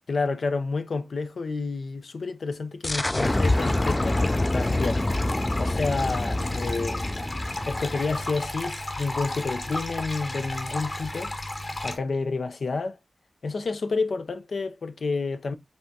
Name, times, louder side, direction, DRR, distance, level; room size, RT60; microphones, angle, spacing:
voice 1, 0.1-5.0 5.6-7.0 7.7-11.3 11.8-13.0 13.4-15.5, left 4 dB, 90° left, 0.5 m, -29 dB
sound 1, 2.8-8.3, left 1 dB, 30° left, 0.3 m, -26 dB
sound 2, 3.2-12.0, left 1 dB, 50° left, 1.3 m, -33 dB
5.4 x 3.5 x 2.6 m
cardioid pair, 50°, 0 cm